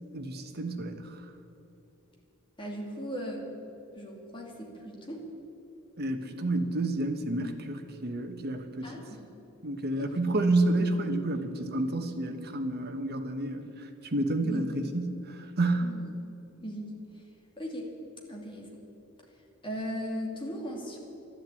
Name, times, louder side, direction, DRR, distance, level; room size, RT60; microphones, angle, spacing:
voice 1, 0.1-1.2 6.0-8.9 9.6-15.9, right 2 dB, 45° right, 6 dB, 1.3 m, -30 dB
voice 2, 2.6-3.5 3.9-5.2 8.8-9.3 10.0-10.1 14.4-14.6 15.8-16.1 16.4-16.9 17.6-17.9 18.3-18.7 19.6-21.0, equal, 25° left, -1 dB, 2.5 m, -38 dB
12.5 x 11.5 x 8.4 m, 2.9 s
head